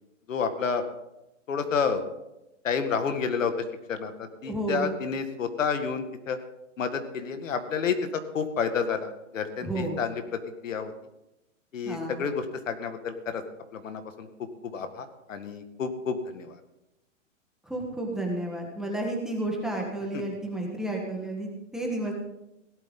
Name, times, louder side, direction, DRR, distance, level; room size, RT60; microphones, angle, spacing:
voice 1, 0.3-0.8 1.5-2.0 2.6-3.5 3.9-4.1 4.4-6.4 6.8-10.2 10.6-10.9 11.7-13.4 13.7-14.3 14.6-16.6, left 6 dB, 75° left, 8 dB, 2.0 m, -30 dB
voice 2, 4.4-5.0 9.6-10.1 11.8-12.2 17.6-22.1, right 1 dB, ahead, -1 dB, 1.5 m, -31 dB
17.5 x 12.0 x 3.9 m, 0.91 s
hypercardioid pair, 165°, 39 cm